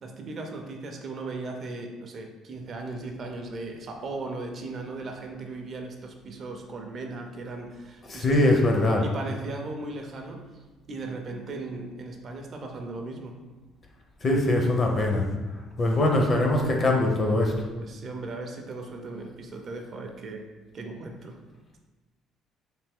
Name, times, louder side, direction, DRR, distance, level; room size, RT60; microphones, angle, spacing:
voice 1, 0.0-8.6 9.0-10.4 10.9-13.4 17.8-20.4 20.7-21.4, right 3 dB, 40° right, 3 dB, 0.4 m, -37 dB
voice 2, 8.1-9.0 14.2-15.3 15.8-17.6, left 1 dB, 30° left, 1 dB, 0.5 m, -22 dB
3.3 x 2.6 x 3.5 m, 1.2 s
cardioid pair, 150°, 0 cm